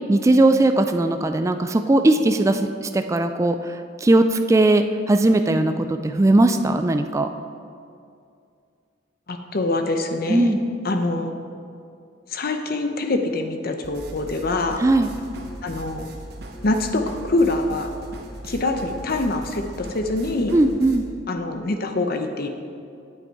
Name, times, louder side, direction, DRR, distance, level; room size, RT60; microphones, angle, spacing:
voice 1, 0.1-7.3 10.3-10.6 14.8-15.1 20.5-21.1, right 2 dB, 15° right, 7 dB, 0.3 m, -19 dB
voice 2, 9.3-10.5 10.8-11.3 12.3-14.8 15.6-16.1 16.6-17.9 18.4-20.6 21.3-22.5, left 2 dB, 50° left, 6 dB, 0.7 m, -24 dB
sound 1, 13.8-21.0, right 1 dB, 55° right, 1.1 m, -38 dB
9.2 x 7.6 x 4.7 m, 2.4 s
head